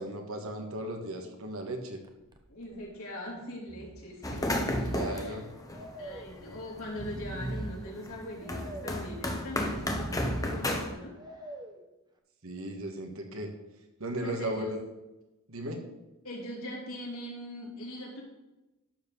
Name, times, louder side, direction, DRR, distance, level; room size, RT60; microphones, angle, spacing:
voice 1, 0.0-2.0 4.6-5.4 12.4-13.5 14.0-14.8 15.5-15.8, right 1 dB, 65° right, 4 dB, 1.6 m, -36 dB
Breathing, 2.0-2.4 2.7-2.8 3.7-3.9 4.1-5.2 5.7-6.4 6.8-7.9 8.4-9.1 9.6-10.6 11.2-11.8, right 1 dB, 20° right, 0.9 m, -39 dB
voice 2, 2.5-4.8 5.1-5.4 6.0-11.4 14.2-14.7 16.2-18.2, left 1 dB, 65° left, -3 dB, 3.3 m, -41 dB
sound 1, 4.2-6.9 7.2-10.9, left 1 dB, 15° left, 1.1 m, -33 dB
12.0 x 4.4 x 7.0 m, 0.99 s
head